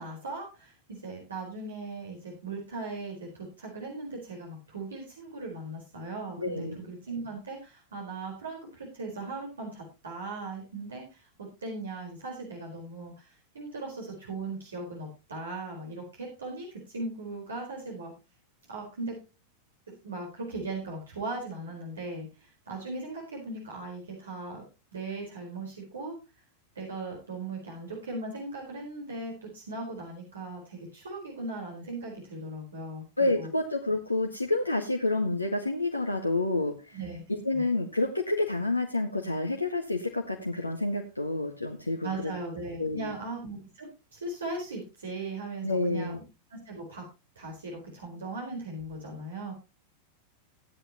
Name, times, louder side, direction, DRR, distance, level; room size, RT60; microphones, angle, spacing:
voice 1, 0.0-18.1 18.7-19.2 19.9-24.6 24.9-26.2 26.7-33.5 36.9-37.2 37.5-37.7 42.0-46.2 46.5-47.0 47.4-49.5, right 2 dB, 70° right, -1 dB, 4.4 m, -38 dB
voice 2, 6.4-6.8 33.2-37.0 37.3-42.3 42.8-43.1 45.6-46.2, left 2 dB, 85° left, 1 dB, 1.7 m, -29 dB
16.0 x 10.5 x 3.0 m, 0.27 s
figure-of-eight pair, 90°, 0 cm